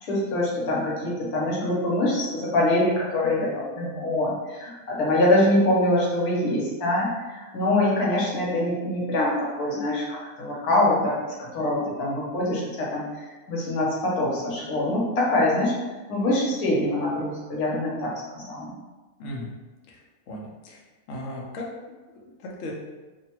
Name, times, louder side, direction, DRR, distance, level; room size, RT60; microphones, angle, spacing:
voice 1, 0.0-15.8 16.1-18.7, left 1 dB, 85° left, -4 dB, 1.3 m, -24 dB
voice 2, 19.2-19.5 19.9-20.0 20.3-20.8 21.1-22.7, left 1 dB, 65° left, -3 dB, 0.8 m, -37 dB
3.2 x 2.2 x 2.8 m, 1.2 s
omnidirectional pair, 1.6 m